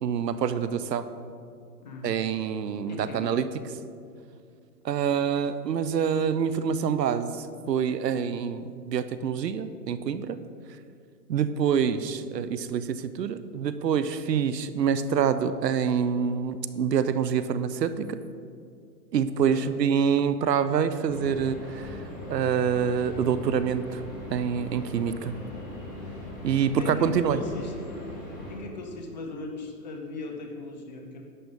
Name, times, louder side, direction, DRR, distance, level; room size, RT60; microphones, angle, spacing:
voice 1, 0.0-1.1 2.0-3.5 4.8-10.4 11.3-18.2 19.1-22.0 22.3-24.0 24.3-25.3 26.4-27.4, right 7 dB, 75° right, 13 dB, 0.8 m, -26 dB
voice 2, 1.8-2.2 2.9-3.3 5.0-5.3 19.5-19.7 26.8-28.1 28.5-31.2, left 2 dB, 25° left, 2 dB, 0.8 m, -38 dB
sound 1, 21.1-28.6, left 1 dB, 5° left, 3.1 m, -40 dB
11.0 x 7.9 x 5.3 m, 2.3 s
hypercardioid pair, 165°, 49 cm